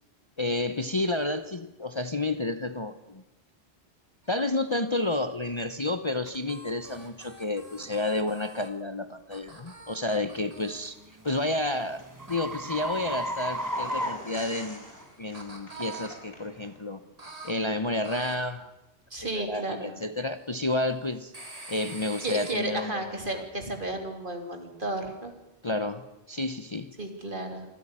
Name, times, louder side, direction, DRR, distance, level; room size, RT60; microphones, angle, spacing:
voice 1, 0.4-3.2 4.3-11.0 11.2-12.0 12.3-14.9 15.2-17.0 17.4-18.7 19.3-21.3 21.7-23.4 25.6-26.9, left 2 dB, 30° left, 10 dB, 0.9 m, -30 dB
sound 1, 4.2-5.6 6.1-8.7 9.3-10.9 12.3-14.0 14.7-16.1 17.2-17.5 18.0-18.4 21.3-22.5, right 3 dB, 35° right, 3.3 m, -46 dB
sound 2, 6.3-6.4 6.9-7.1 7.7-7.9 10.6-15.1, equal, 15° right, 1.3 m, -35 dB
sound 3, 11.2-16.7, left 1 dB, 60° left, 5.4 m, -47 dB
voice 2, 19.1-19.9 22.2-25.3 27.0-27.6, right 2 dB, 50° right, 5 dB, 3.3 m, -33 dB
25.0 x 14.5 x 9.9 m, 0.95 s
omnidirectional pair, 1.1 m